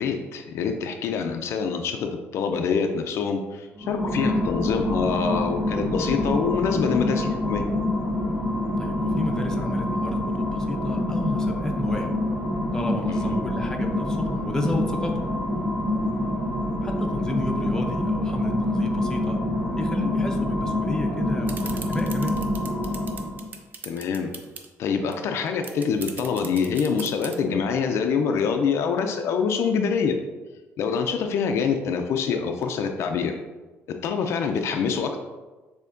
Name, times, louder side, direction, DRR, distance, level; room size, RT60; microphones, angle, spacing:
voice 1, 0.0-7.6 13.1-13.4 23.8-24.3 24.8-30.2 30.8-33.3 34.0-35.2, left 6 dB, 65° left, 5 dB, 0.4 m, -25 dB
sound 1, 3.8-23.5, left 1 dB, 15° right, 0.8 m, -26 dB
voice 2, 8.8-12.1 12.7-15.3 16.8-19.4 19.8-22.4, left 1 dB, 10° left, 1 dB, 0.5 m, -31 dB
sound 2, 21.5-24.7 25.1-25.2 25.4-27.3, right 5 dB, 35° right, 0.5 m, -38 dB
6.6 x 2.8 x 2.5 m, 1.2 s
cardioid pair, 140°, 5 cm